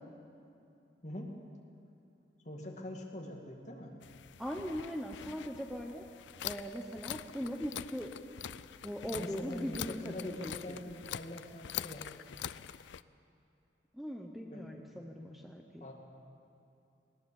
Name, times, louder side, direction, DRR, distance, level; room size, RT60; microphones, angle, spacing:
voice 1, 1.0-1.3 2.4-3.9 9.1-12.1 14.5-15.1 15.8-15.9, left 1 dB, 40° left, 0 dB, 2.4 m, -44 dB
sound 1, 4.0-13.0, left 9 dB, 80° left, 0.4 m, -44 dB
voice 2, 4.4-6.0 6.4-8.1 8.8-10.5 13.9-15.8, equal, ahead, 1 dB, 0.9 m, -40 dB
19.5 x 19.0 x 7.1 m, 2.7 s
head